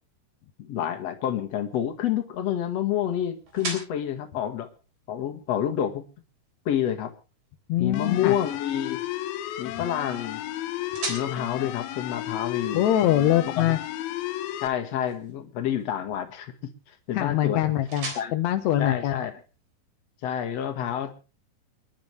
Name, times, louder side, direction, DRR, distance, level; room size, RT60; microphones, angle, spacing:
voice 1, 0.6-4.7 5.1-6.0 6.7-7.1 7.8-9.0 9.6-10.4 11.1-12.8 13.6-13.8 14.6-16.5 17.1-17.6 18.2-18.3 18.8-19.3 20.2-21.2, left 10 dB, 55° left, 7 dB, 2.3 m, -28 dB
sound 1, 0.9-19.7, right 3 dB, 55° right, 4.8 m, -44 dB
voice 2, 7.7-8.3 12.7-13.8 17.1-19.2, left 12 dB, 75° left, 6 dB, 1.8 m, -23 dB
sound 2, 7.9-14.7, left 13 dB, 90° left, 2.8 m, -33 dB
29.0 x 11.0 x 3.2 m, 0.33 s
omnidirectional pair, 4.2 m